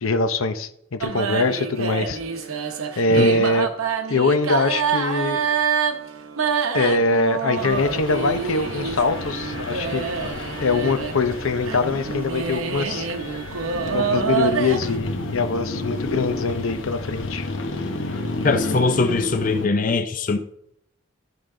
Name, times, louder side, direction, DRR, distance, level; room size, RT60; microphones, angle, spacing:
voice 1, 0.0-2.2 3.0-3.7 4.1-5.4 6.7-10.0 10.6-13.1 13.9-17.5, left 3 dB, 85° left, 9 dB, 0.7 m, -23 dB
sound 1, 1.0-15.0, right 6 dB, 90° right, 0.9 m, -27 dB
sound 2, 7.6-19.7, left 2 dB, 70° left, 1.0 m, -31 dB
voice 2, 18.4-20.4, left 3 dB, 40° left, 8 dB, 0.5 m, -21 dB
12.5 x 5.2 x 3.7 m, 0.72 s
head